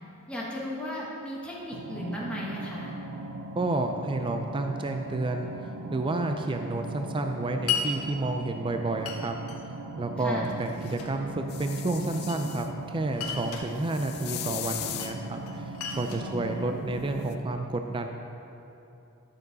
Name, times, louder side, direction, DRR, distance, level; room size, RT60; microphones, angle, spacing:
voice 1, 0.3-2.9 10.2-10.5 16.2-17.2, equal, 5° left, -6 dB, 1.3 m, -36 dB
sound 1, 1.7-17.3, right 2 dB, 85° right, 0.7 m, -40 dB
voice 2, 3.6-5.5 5.9-9.3 10.0-18.1, right 2 dB, 20° right, 5 dB, 0.4 m, -30 dB
Glass, 7.7-7.9 9.1-9.6 10.4-11.2 12.0-12.7 13.1-13.7 14.8-15.2 15.5-17.1, left 7 dB, 80° left, 1.2 m, -35 dB
sound 2, 11.5-12.7 13.8-15.2 17.3-17.4, left 12 dB, 45° left, 0.4 m, -38 dB
12.0 x 7.0 x 4.0 m, 2.8 s
head